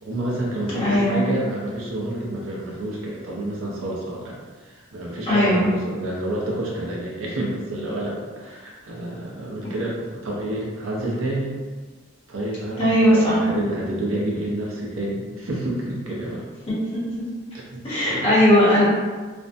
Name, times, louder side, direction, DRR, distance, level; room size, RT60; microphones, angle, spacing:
voice 1, 0.0-11.5 12.3-12.8 13.1-16.4 17.5-17.8 18.1-18.4, right 1 dB, 85° right, -3 dB, 0.6 m, -29 dB
voice 2, 0.7-1.2 5.3-5.7 12.8-13.4 16.7-17.3 17.8-18.9, left 1 dB, 30° left, -9 dB, 0.9 m, -18 dB
2.5 x 2.1 x 2.5 m, 1.4 s
head